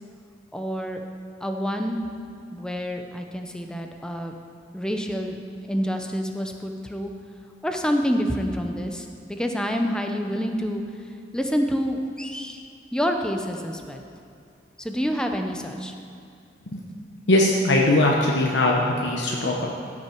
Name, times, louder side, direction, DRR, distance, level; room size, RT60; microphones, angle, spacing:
voice 1, 0.5-1.0 1.4-2.0 2.5-4.3 4.7-5.4 5.7-7.1 7.6-10.8 11.3-12.6 12.9-14.1 14.8-15.9, equal, 5° left, 4 dB, 0.6 m, -27 dB
voice 2, 17.3-19.7, left 1 dB, 90° left, -1 dB, 0.9 m, -20 dB
14.0 x 6.1 x 4.5 m, 2.5 s
head